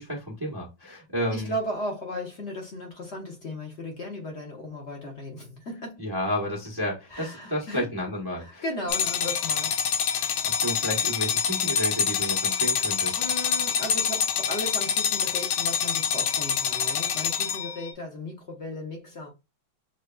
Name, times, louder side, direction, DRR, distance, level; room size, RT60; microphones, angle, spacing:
voice 1, 0.0-1.5 6.0-8.6 10.1-13.2, equal, 25° right, 0.5 m, -31 dB
voice 2, 1.3-6.0 7.1-7.9 8.4-9.8 13.2-19.3, left 1 dB, 55° left, 0.8 m, -36 dB
sound 1, 8.9-17.9, left 7 dB, 80° left, 1.3 m, -26 dB
6.2 x 2.3 x 2.2 m
omnidirectional pair, 2.2 m